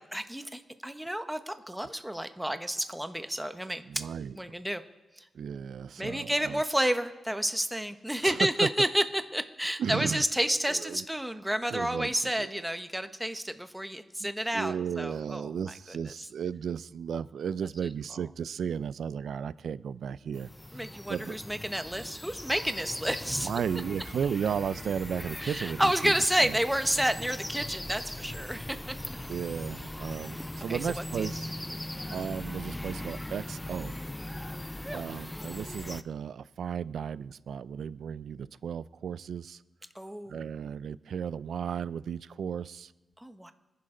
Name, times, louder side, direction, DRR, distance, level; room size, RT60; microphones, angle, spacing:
voice 1, 0.1-3.8 4.4-4.8 6.0-9.0 9.3-15.5 20.7-23.5 25.4-28.8 30.7-31.3 32.0-32.2 34.8-35.0 39.9-40.4 43.2-43.5, equal, 5° right, 9 dB, 1.1 m, -30 dB
voice 2, 3.9-4.4 5.3-6.6 8.2-8.7 9.8-10.3 10.7-11.0 11.7-12.6 14.2-21.4 23.3-26.1 26.4-26.6 29.3-31.5 31.8-31.9 32.1-34.0 34.9-39.6 40.3-42.9, right 7 dB, 75° right, 18 dB, 0.4 m, -34 dB
sound 1, 20.3-36.0, left 1 dB, 15° left, 0.6 m, -40 dB
25.5 x 10.5 x 3.8 m, 1.1 s
cardioid pair, 85°, 0 cm